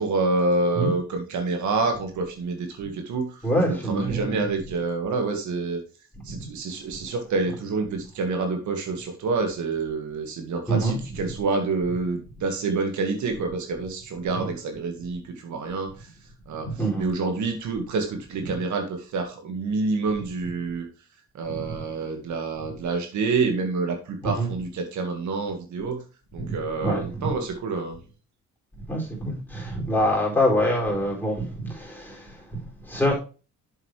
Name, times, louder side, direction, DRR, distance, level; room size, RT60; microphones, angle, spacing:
voice 1, 0.0-3.4 3.7-5.8 6.2-15.9 16.5-16.7 17.0-20.9 21.3-26.0 26.3-28.0, right 3 dB, 70° right, 1.9 m, -27 dB
voice 2, 3.4-4.4 6.1-6.5 6.9-7.0 10.7-11.2 14.3-14.5 16.6-17.1 18.4-18.5 21.5-21.9 24.2-24.5 26.4-27.4 28.9-33.1, equal, 5° left, 4.6 m, -26 dB
7.6 x 7.0 x 3.3 m
cardioid pair, 90°, 30 cm